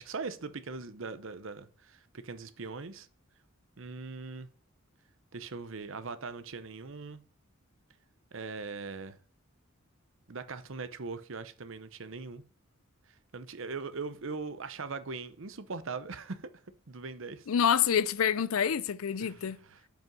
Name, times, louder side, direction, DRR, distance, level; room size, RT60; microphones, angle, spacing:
voice 1, 0.0-3.1 3.8-4.5 5.3-7.2 8.3-9.2 10.3-12.4 13.1-16.5 16.9-17.5 19.2-19.9, right 4 dB, 65° right, 0.8 m, -40 dB
voice 2, 17.5-19.6, left 8 dB, 85° left, 0.5 m, -27 dB
7.8 x 5.2 x 5.3 m
head